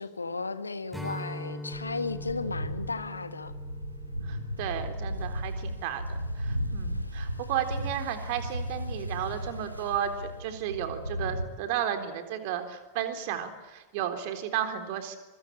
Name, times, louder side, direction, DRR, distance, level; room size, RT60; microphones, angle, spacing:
voice 1, 0.0-3.5, left 3 dB, 80° left, 1.4 m, -35 dB
Strum, 0.9-6.3, left 1 dB, 5° right, 4.1 m, -42 dB
sound 1, 1.7-11.5, equal, 90° right, 2.6 m, -35 dB
voice 2, 4.3-10.1 10.4-15.2, right 10 dB, 50° right, 3.6 m, -33 dB
25.5 x 23.0 x 8.8 m
figure-of-eight pair, 90°, 0 cm